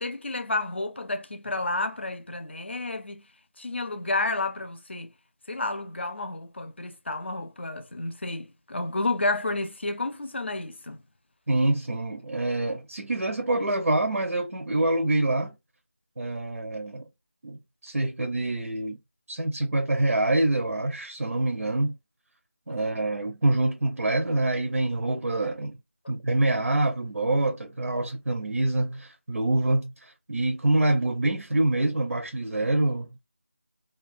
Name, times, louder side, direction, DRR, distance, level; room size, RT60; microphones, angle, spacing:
voice 1, 0.0-3.3 3.6-5.1 5.5-11.0, left 2 dB, 50° left, 0.5 m, -31 dB
voice 2, 11.5-15.6 16.2-17.1 17.4-19.0 19.3-22.0 22.7-25.8 26.1-33.1, right 2 dB, 85° right, 0.5 m, -26 dB
2.3 x 2.2 x 2.4 m
figure-of-eight pair, 175°, 8 cm